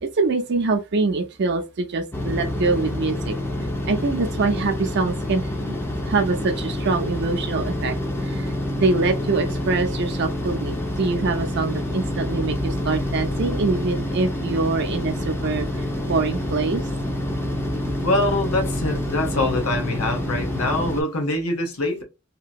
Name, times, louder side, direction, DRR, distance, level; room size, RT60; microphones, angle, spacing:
voice 1, 0.0-3.4 3.8-5.8 6.1-8.0 8.2-16.8, right 3 dB, 50° right, 0.5 m, -24 dB
sound 1, 2.1-21.0, left 1 dB, 10° left, 0.4 m, -27 dB
voice 2, 18.0-22.0, left 2 dB, 85° left, 1.0 m, -24 dB
2.9 x 2.7 x 2.3 m
head